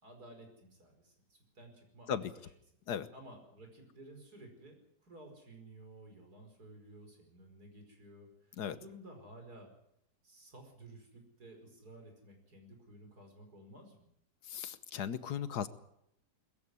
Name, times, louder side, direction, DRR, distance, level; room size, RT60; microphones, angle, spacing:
voice 1, 0.0-2.5 3.1-9.7 10.2-14.1, right 1 dB, 70° right, 4 dB, 5.6 m, -54 dB
voice 2, 14.4-15.7, left 8 dB, 75° left, 14 dB, 1.6 m, -37 dB
21.0 x 14.5 x 9.6 m, 0.76 s
omnidirectional pair, 1.7 m